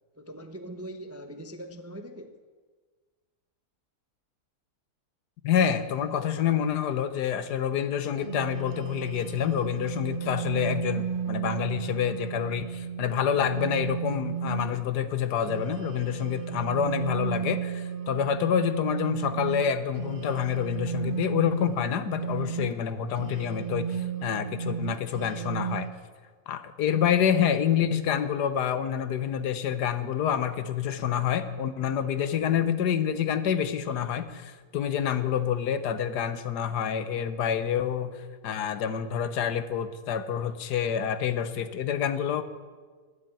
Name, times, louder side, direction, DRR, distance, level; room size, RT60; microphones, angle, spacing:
voice 1, 0.2-2.4, right 1 dB, 15° right, 7 dB, 0.4 m, -41 dB
voice 2, 5.4-25.9 26.5-38.1 38.4-42.4, left 8 dB, 90° left, 12 dB, 1.5 m, -27 dB
sound 1, 8.1-14.8 15.4-22.7 23.1-25.9, right 7 dB, 50° right, 0.7 m, -34 dB
12.5 x 10.5 x 9.0 m, 1.5 s
omnidirectional pair, 1.7 m